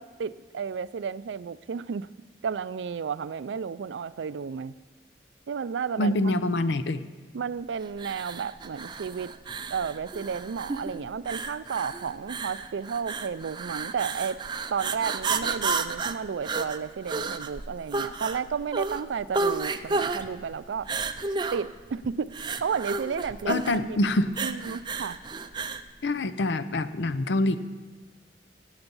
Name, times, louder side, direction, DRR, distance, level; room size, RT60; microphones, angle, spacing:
voice 1, 0.0-2.1 2.4-4.7 5.5-6.1 7.3-9.3 9.7-14.4 14.7-20.9 21.5-22.3 22.6-24.0 24.4-25.2, right 6 dB, 90° right, 17 dB, 0.4 m, -32 dB
voice 2, 6.0-7.0 23.5-24.3 26.0-27.6, left 2 dB, 80° left, 12 dB, 0.6 m, -25 dB
sound 1, 8.0-25.9, right 4 dB, 25° right, 0.4 m, -32 dB
16.5 x 8.0 x 5.5 m, 1.4 s
head